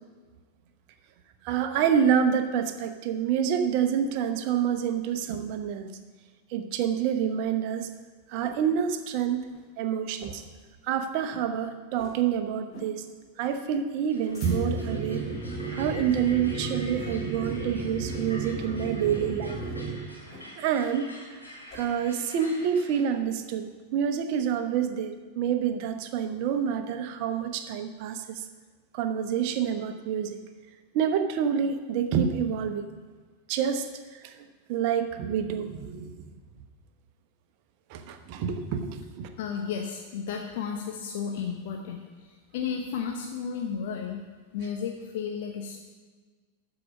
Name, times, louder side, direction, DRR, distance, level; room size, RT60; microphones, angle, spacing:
voice 1, 1.4-5.9 6.5-7.9 8.3-9.4 9.8-10.4 10.8-13.1 13.4-15.2 15.7-19.6 20.5-21.4 21.7-28.5 28.9-30.4 30.9-32.9 33.5-36.4 37.9-39.3, right 8 dB, 45° right, 8 dB, 0.9 m, -28 dB
sound 1, 7.5-8.7 9.1-9.2 9.4-9.7 10.1-10.6 10.9-11.0 11.2-11.5 11.9-12.3 12.7-13.0 13.4-13.6 14.0-14.9 15.5-15.8 16.2-16.5 16.9-17.3 17.7-17.9 18.9-19.2 20.3-20.7 21.1-21.8, left 1 dB, 25° left, 3.8 m, -49 dB
sound 2, 14.1-23.0, left 1 dB, 85° left, 3.4 m, -46 dB
sound 3, 14.4-20.0, right 3 dB, ahead, 1.4 m, -34 dB
voice 2, 39.4-44.2 44.5-45.8, left 6 dB, 50° left, 2 dB, 0.9 m, -33 dB
13.0 x 5.1 x 7.1 m, 1.4 s
figure-of-eight pair, 90°, 0 cm